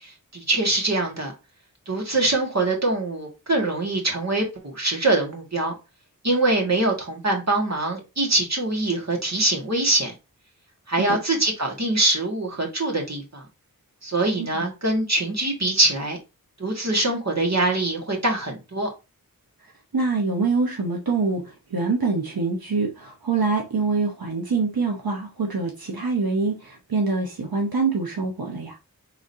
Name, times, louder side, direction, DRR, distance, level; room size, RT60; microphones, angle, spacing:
voice 1, 0.0-1.3 1.9-5.7 6.2-10.1 10.9-13.4 14.0-16.2 16.6-18.9, right 2 dB, 50° right, 1.9 m, -23 dB
voice 2, 14.4-14.7 19.9-28.8, right 4 dB, 85° right, 0.9 m, -25 dB
5.1 x 3.6 x 2.7 m
wide cardioid pair, 45°, 35 cm